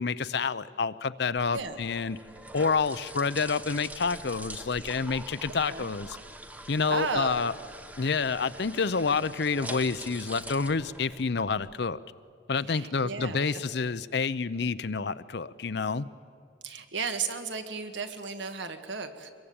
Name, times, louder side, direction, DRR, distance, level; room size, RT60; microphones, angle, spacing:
voice 1, 0.0-2.2 2.5-6.2 6.7-7.5 8.0-12.0 12.5-16.1, left 4 dB, 60° left, 15 dB, 0.6 m, -28 dB
sound 1, 1.4-11.7, right 1 dB, 10° right, 0.9 m, -44 dB
voice 2, 6.9-7.5 12.7-13.6 16.6-19.3, right 5 dB, 70° right, 7 dB, 1.9 m, -34 dB
24.0 x 21.5 x 8.8 m, 2.2 s
head